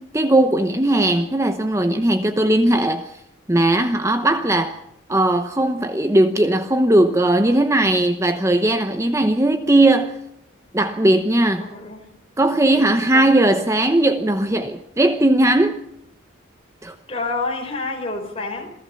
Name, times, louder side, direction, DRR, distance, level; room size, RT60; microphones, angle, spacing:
voice 1, 0.0-3.2 3.5-4.8 5.1-10.2 10.7-11.7 12.4-15.8 16.8-16.9, right 1 dB, 15° right, 0.9 m, -18 dB
voice 2, 11.6-12.1 12.7-13.3 17.1-18.7, left 3 dB, 30° left, 4.8 m, -29 dB
27.5 x 16.0 x 7.0 m
head